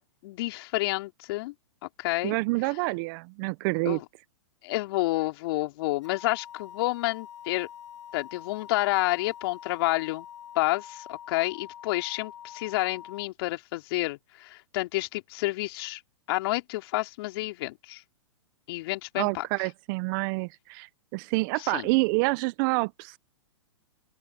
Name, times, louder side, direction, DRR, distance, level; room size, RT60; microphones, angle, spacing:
voice 1, 0.0-1.5 1.8-2.3 3.9-4.0 4.6-7.7 8.1-10.3 10.6-16.0 16.3-18.0 18.7-19.4 21.6-21.9, left 19 dB, 50° left, 3.7 m, -29 dB
voice 2, 2.2-4.0 19.2-23.2, right 27 dB, 40° right, 1.1 m, -27 dB
sound 1, 6.0-13.3, left 10 dB, 70° left, 6.9 m, -45 dB
open air
hypercardioid pair, 120°, 16 cm